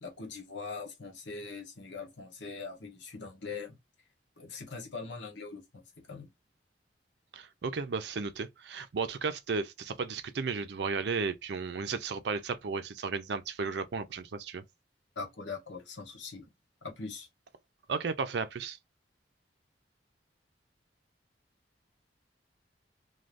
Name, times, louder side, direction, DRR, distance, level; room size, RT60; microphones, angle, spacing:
voice 1, 0.0-3.8 4.4-6.3 15.2-16.5 16.8-17.3, left 4 dB, 80° left, 1.1 m, -42 dB
voice 2, 7.3-14.6 17.9-18.8, right 5 dB, 65° right, 0.5 m, -34 dB
2.5 x 2.2 x 3.2 m
head